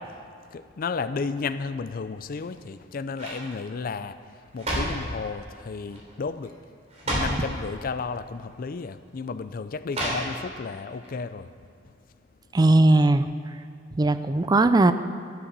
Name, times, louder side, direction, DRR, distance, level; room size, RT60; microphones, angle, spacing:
voice 1, 0.0-6.6 7.0-11.5 11.8-11.9, left 4 dB, 50° left, 13 dB, 0.4 m, -33 dB
sound 1, 2.3-2.7 3.1-3.5 4.3-5.1 5.9-6.2 6.4-6.5 6.9-7.5 8.4-8.5 9.9-10.6 11.0-11.1, right 1 dB, 35° right, 3.4 m, -30 dB
voice 2, 12.5-13.3 13.9-14.9, right 2 dB, 20° right, 11 dB, 0.4 m, -18 dB
13.0 x 7.5 x 6.7 m, 2.4 s
head